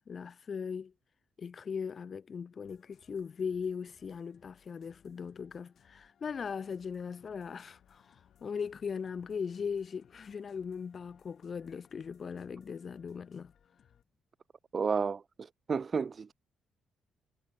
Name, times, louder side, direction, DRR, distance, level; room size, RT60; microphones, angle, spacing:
voice 1, 0.1-0.9 1.4-13.5, left 6 dB, 45° left, 0.3 m, -39 dB
sound 1, 2.6-14.0, left 9 dB, 60° left, 5.0 m, -67 dB
sound 2, 6.6-12.1, left 12 dB, 75° left, 6.7 m, -71 dB
voice 2, 14.7-16.3, right 5 dB, 40° right, 0.4 m, -32 dB
cardioid pair, 90°, 0 cm